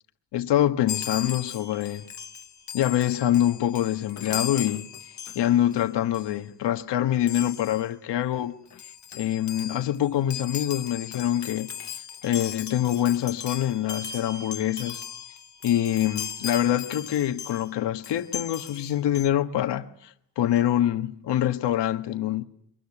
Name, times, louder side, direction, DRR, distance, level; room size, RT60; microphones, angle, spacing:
voice 1, 0.3-2.1 2.7-4.9 5.3-8.5 8.8-15.0 15.6-22.4, left 12 dB, 80° left, 1.4 m, -25 dB
Chime, 0.9-5.8 6.1-6.4 7.3-7.9 8.4-8.5 8.7-17.7 18.0-19.3, left 8 dB, 45° left, 1.0 m, -38 dB
22.5 x 20.5 x 9.9 m
cardioid pair, 120°, 41 cm